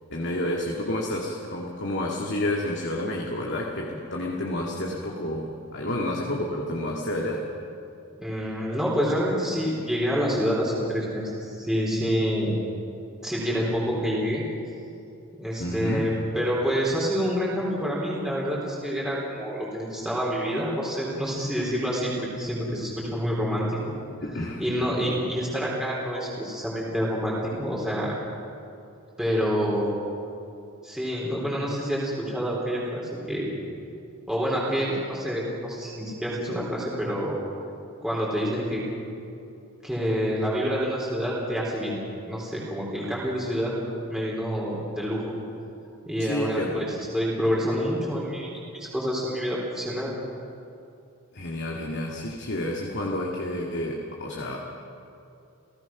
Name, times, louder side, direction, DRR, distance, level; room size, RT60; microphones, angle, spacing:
voice 1, 0.1-7.5 15.6-16.1 24.2-24.6 46.2-46.8 51.3-54.6, left 1 dB, 50° left, -1 dB, 2.1 m, -30 dB
voice 2, 8.2-12.6 13.2-14.4 15.4-23.8 24.6-28.2 29.2-30.0 30.8-33.0 33.3-33.5 34.3-37.4 38.0-38.8 39.8-42.0 42.3-43.7 44.1-45.3 46.1-50.1, equal, 5° right, -5 dB, 3.8 m, -27 dB
30.0 x 17.5 x 6.0 m, 2.7 s
head